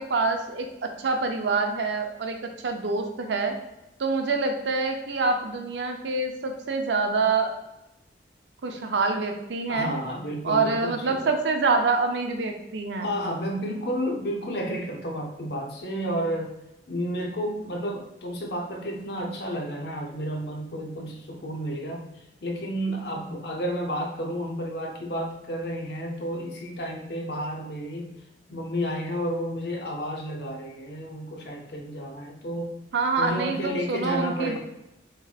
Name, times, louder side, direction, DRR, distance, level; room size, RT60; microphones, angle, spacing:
voice 1, 0.0-2.4 2.6-3.5 4.0-7.5 8.6-9.9 10.4-13.1 32.9-34.6, right 3 dB, 70° right, 4 dB, 0.5 m, -26 dB
voice 2, 9.7-11.3 13.0-16.5 16.9-22.0 22.4-28.1 28.5-32.8 33.2-34.6, equal, 60° left, 1 dB, 0.6 m, -31 dB
3.7 x 3.3 x 2.3 m, 0.88 s
head